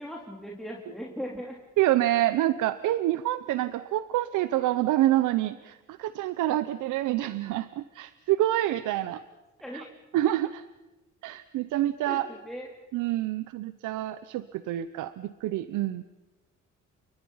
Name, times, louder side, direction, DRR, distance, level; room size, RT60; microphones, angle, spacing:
voice 1, 0.0-1.6 9.6-9.9 12.1-12.7, equal, ahead, -2 dB, 3.4 m, -38 dB
voice 2, 1.8-9.2 9.7-9.8 10.1-10.6 11.2-12.3 12.9-16.0, right 14 dB, 85° right, 13 dB, 0.8 m, -27 dB
29.5 x 23.0 x 5.6 m, 1.1 s
cardioid pair, 90°, 30 cm